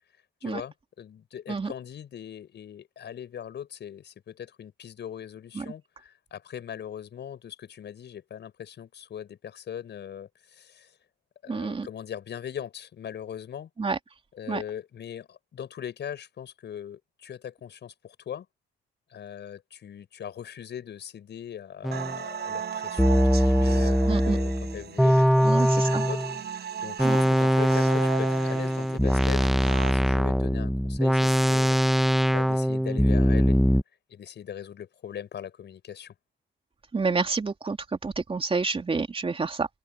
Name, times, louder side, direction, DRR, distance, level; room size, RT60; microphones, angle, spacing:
voice 1, 0.4-10.9 11.4-13.7 14.3-18.5 19.1-33.8 34.1-36.1, left 9 dB, 60° left, 6.2 m, -40 dB
voice 2, 11.5-11.9 13.8-14.0 14.5-14.6 24.1-24.4 25.4-26.1 27.0-27.2 36.9-37.8 38.0-39.7, right 4 dB, 30° right, 2.9 m, -28 dB
sound 1, 21.8-22.2 23.0-26.4 27.0-33.8, equal, ahead, 1.0 m, -22 dB
sound 2, 21.9-29.9, right 8 dB, 55° right, 6.6 m, -37 dB
open air
cardioid pair, 90°, 20 cm